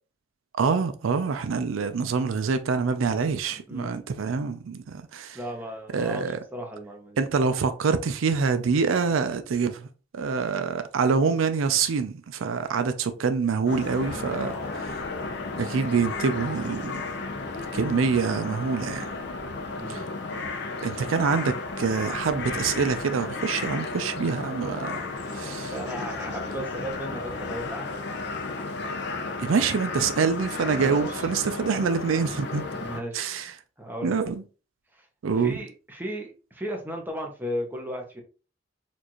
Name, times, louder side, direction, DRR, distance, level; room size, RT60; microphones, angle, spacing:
voice 1, 0.5-5.4 5.9-6.4 7.2-9.9 10.1-14.6 15.6-16.9 17.7-19.1 19.9-20.0 20.8-25.0 25.3-25.7 29.4-32.6 33.1-33.5 34.0-34.4 35.2-35.5, right 5 dB, 85° right, 0.4 m, -25 dB
voice 2, 3.7-4.1 5.3-7.2 13.9-15.0 19.8-20.1 25.7-28.1 30.7-31.3 32.8-33.3 33.8-34.3 34.9-35.1 35.3-38.2, equal, 10° right, 0.8 m, -36 dB
sound 1, 13.7-33.0, left 3 dB, 60° left, 0.6 m, -33 dB
4.3 x 2.5 x 2.9 m
head